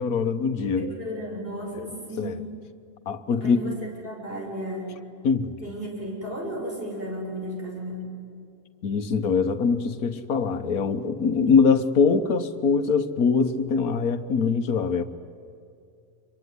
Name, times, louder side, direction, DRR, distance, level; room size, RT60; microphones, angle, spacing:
voice 1, 0.0-0.9 2.2-2.4 3.1-3.6 5.2-5.6 8.8-15.0, left 5 dB, 80° left, 9 dB, 1.7 m, -23 dB
voice 2, 0.8-2.5 3.4-5.0 5.6-8.1, equal, 40° right, -1 dB, 7.3 m, -34 dB
26.5 x 23.5 x 9.7 m, 2.5 s
omnidirectional pair, 1.5 m